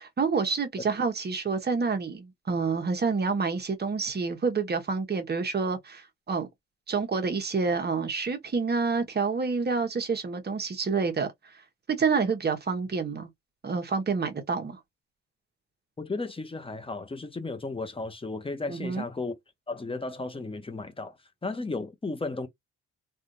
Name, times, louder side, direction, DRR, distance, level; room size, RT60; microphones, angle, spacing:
voice 1, 0.0-6.5 6.9-11.3 11.9-13.3 13.6-14.8 18.7-19.1, right 4 dB, 35° right, 1.1 m, -28 dB
voice 2, 16.0-19.4 19.7-21.2 21.4-22.5, left 3 dB, 20° left, 0.9 m, -34 dB
3.4 x 2.5 x 2.7 m
cardioid pair, 90°, 30 cm